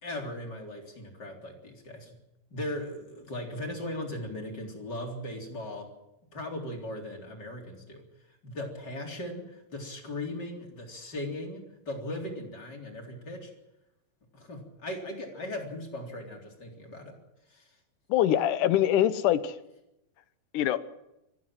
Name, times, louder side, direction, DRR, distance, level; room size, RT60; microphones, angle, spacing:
voice 1, 0.0-2.2 2.5-5.9 6.3-8.0 8.4-13.5 14.3-17.1 17.5-17.7, left 1 dB, 30° left, 1 dB, 4.1 m, -38 dB
voice 2, 18.1-19.6 20.5-20.9, left 11 dB, 75° left, 13 dB, 2.5 m, -24 dB
24.5 x 15.0 x 7.6 m, 0.89 s
omnidirectional pair, 3.8 m